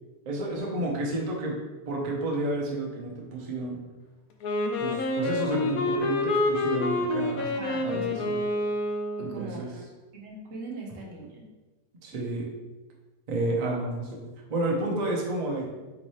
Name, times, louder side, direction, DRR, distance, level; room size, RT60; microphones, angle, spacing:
voice 1, 0.3-1.6 1.9-3.8 4.8-7.4 7.8-8.4 9.2-9.7 12.0-12.5 13.3-15.7, right 2 dB, 75° right, -2 dB, 0.3 m, -31 dB
Wind instrument woodwind instrument, 4.4-9.4, left 2 dB, 70° left, 0.9 m, -28 dB
voice 2, 7.4-8.3 9.3-9.8 10.1-11.4 12.1-12.2, right 2 dB, 55° right, -1 dB, 1.0 m, -41 dB
3.5 x 3.1 x 4.2 m, 1.2 s
omnidirectional pair, 1.8 m